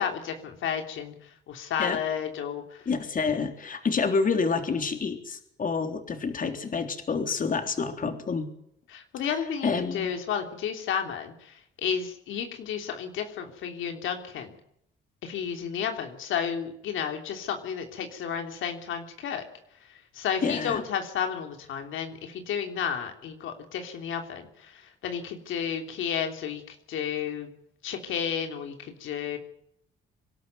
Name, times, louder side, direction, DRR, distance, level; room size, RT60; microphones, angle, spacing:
voice 1, 0.0-2.9 8.9-14.5 15.2-19.4 19.8-27.5 27.8-29.4, left 8 dB, 80° left, 5 dB, 3.2 m, -32 dB
voice 2, 2.9-8.5 9.6-10.1 20.4-20.8, left 5 dB, 45° left, 6 dB, 3.6 m, -28 dB
26.0 x 12.5 x 9.5 m, 0.73 s
cardioid pair, 90°, 20 cm